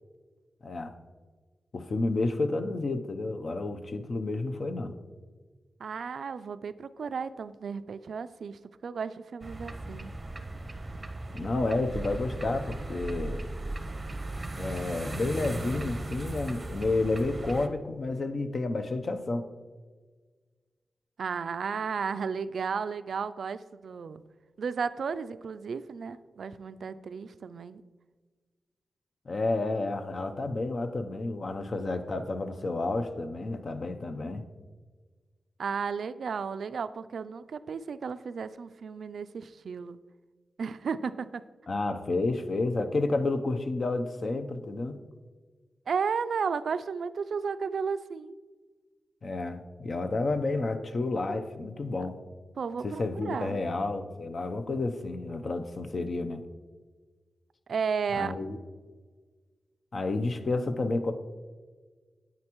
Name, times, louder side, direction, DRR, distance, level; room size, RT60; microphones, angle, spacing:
voice 1, 0.6-0.9 1.7-4.9 11.3-13.4 14.6-19.4 29.3-34.4 41.7-45.0 49.2-52.2 52.8-56.4 58.1-58.6 59.9-61.1, left 2 dB, 50° left, 8 dB, 0.7 m, -30 dB
voice 2, 5.8-10.1 21.2-24.2 24.6-27.8 35.6-40.0 40.6-41.5 45.9-48.4 52.6-53.6 57.7-58.3, right 6 dB, 75° right, 13 dB, 0.3 m, -33 dB
sound 1, 9.4-17.7, right 2 dB, 25° right, 0.7 m, -37 dB
9.6 x 8.6 x 3.0 m, 1.4 s
wide cardioid pair, 105°, 0 cm